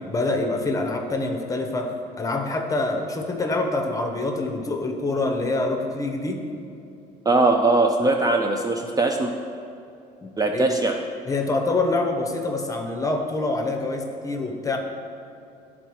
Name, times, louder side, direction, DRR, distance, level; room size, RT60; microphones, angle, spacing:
voice 1, 0.0-6.4 10.2-10.8 11.3-14.8, left 2 dB, 20° left, 3 dB, 0.8 m, -26 dB
voice 2, 7.3-9.3 10.4-11.0, right 2 dB, 20° right, 3 dB, 0.4 m, -20 dB
12.0 x 4.1 x 3.1 m, 2.6 s
cardioid pair, 110°, 17 cm